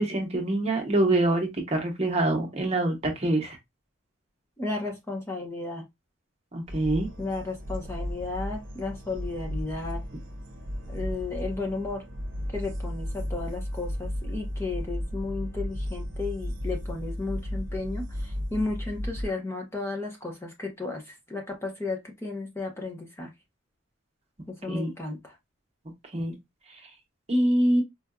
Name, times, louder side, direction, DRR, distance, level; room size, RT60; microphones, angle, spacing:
voice 1, 0.0-3.6 6.5-7.1 24.7-24.9 26.1-26.3 27.3-27.8, right 1 dB, 30° right, 0.8 m, -25 dB
voice 2, 4.6-5.8 7.2-10.0 10.9-12.0 12.5-23.3 24.5-25.4, left 3 dB, 10° left, 0.7 m, -34 dB
Hypnotic Heartbeat Atmosphere (Freqman Cliche Hypnotic), 6.7-19.3, equal, 60° right, 0.8 m, -34 dB
4.6 x 2.5 x 2.2 m
head